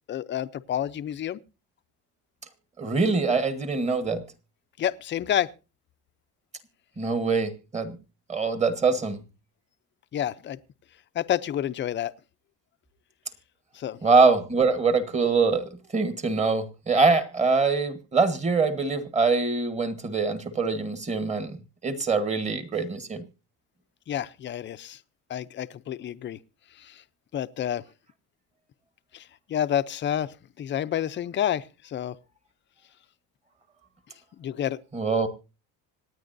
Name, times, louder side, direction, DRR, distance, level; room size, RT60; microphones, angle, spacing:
voice 1, 0.1-1.4 4.8-5.5 10.1-10.6 11.1-12.1 13.7-14.0 24.1-25.0 25.3-26.4 26.8-27.0 27.3-27.8 29.1-32.2 34.4-34.8, left 10 dB, 30° left, 0.5 m, -29 dB
voice 2, 2.8-4.2 7.0-8.0 8.3-9.2 14.0-21.6 21.8-23.2 34.9-35.3, right 4 dB, 20° right, 1.3 m, -24 dB
26.0 x 9.6 x 2.6 m
cardioid pair, 145°, 37 cm